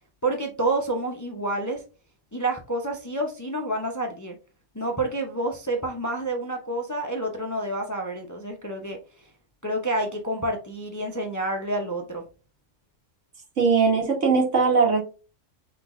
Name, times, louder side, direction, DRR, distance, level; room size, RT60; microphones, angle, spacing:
voice 1, 0.2-1.8 2.3-4.3 4.7-9.0 9.6-12.2, right 2 dB, 20° left, 2 dB, 0.5 m, -28 dB
voice 2, 13.6-15.0, right 5 dB, 80° right, 1 dB, 1.6 m, -20 dB
5.8 x 3.2 x 2.5 m, 0.33 s
omnidirectional pair, 1.3 m